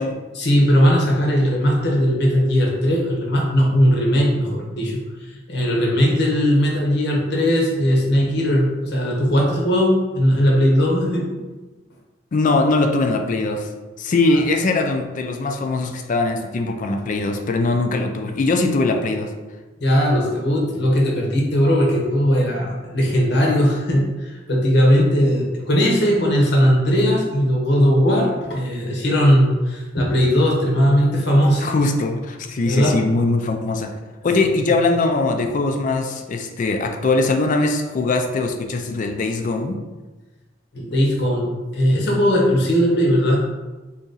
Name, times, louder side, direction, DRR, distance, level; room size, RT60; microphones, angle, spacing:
voice 1, 0.3-5.0 5.5-11.2 19.8-31.7 32.6-32.9 40.7-43.4, equal, 60° left, -1 dB, 0.8 m, -18 dB
voice 2, 12.3-13.7 14.0-19.3 31.6-34.0 34.2-39.8, left 3 dB, 40° left, 5 dB, 0.3 m, -21 dB
2.9 x 2.6 x 3.8 m, 1.2 s
head